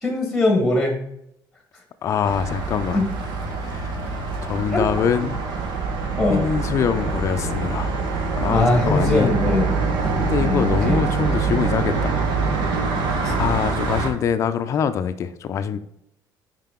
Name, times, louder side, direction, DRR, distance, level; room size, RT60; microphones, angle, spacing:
voice 1, 0.0-1.0 2.9-3.0 4.7-4.8 6.2-6.4 8.5-9.7 10.4-11.0 13.2-13.3, left 2 dB, 5° left, 1.2 m, -21 dB
voice 2, 2.0-3.1 3.6-4.1 4.4-5.4 6.3-7.9 8.4-9.4 10.1-12.2 13.3-15.8, left 8 dB, 40° left, 0.4 m, -24 dB
sound 1, 2.2-14.1, right 4 dB, 80° right, 1.2 m, -24 dB
5.6 x 4.8 x 3.6 m
cardioid pair, 165°, 8 cm